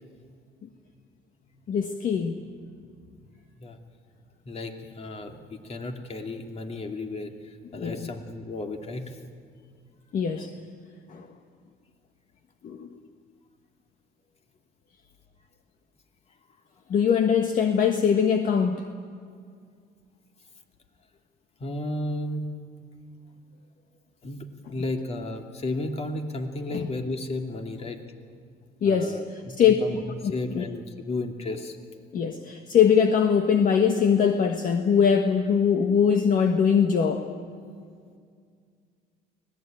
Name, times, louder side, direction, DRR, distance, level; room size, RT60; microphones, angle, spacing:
voice 1, 1.7-2.4 7.8-8.1 10.1-10.5 11.1-11.3 12.6-12.9 16.9-18.8 26.7-26.9 28.8-29.2 29.6-29.8 30.2-30.6 32.1-37.3, left 7 dB, 55° left, 5 dB, 1.4 m, -22 dB
voice 2, 4.5-7.3 7.7-9.2 10.4-10.5 21.6-22.5 24.2-28.0 28.8-29.5 29.8-31.8, left 2 dB, 35° left, 4 dB, 2.7 m, -33 dB
24.5 x 18.5 x 9.1 m, 2.2 s
cardioid pair, 110°, 17 cm